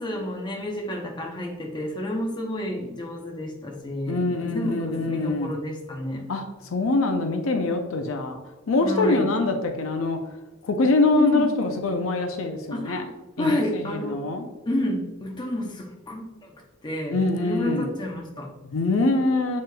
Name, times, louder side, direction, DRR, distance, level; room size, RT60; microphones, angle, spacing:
voice 1, 0.0-6.3 8.8-9.3 11.2-11.5 12.7-13.1 13.4-14.2 14.7-16.5 16.8-18.5, left 1 dB, 20° left, 0 dB, 0.7 m, -30 dB
voice 2, 4.1-5.5 6.3-8.4 8.7-10.2 10.6-13.0 13.4-14.5 17.1-17.9 18.6-19.6, left 2 dB, 70° left, 5 dB, 0.5 m, -24 dB
7.6 x 3.1 x 2.2 m, 1.2 s
head